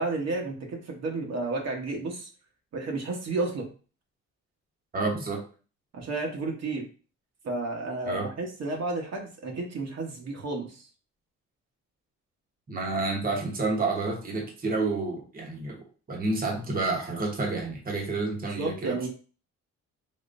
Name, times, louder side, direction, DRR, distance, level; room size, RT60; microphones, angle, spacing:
voice 1, 0.0-2.3 2.7-3.7 5.9-6.9 7.4-10.9 18.6-19.1, right 3 dB, 60° right, 0 dB, 1.1 m, -32 dB
voice 2, 4.9-5.4 8.1-8.3 12.7-19.1, right 3 dB, 30° right, 0 dB, 1.0 m, -29 dB
3.6 x 3.1 x 2.5 m, 0.37 s
cardioid pair, 90°, 30 cm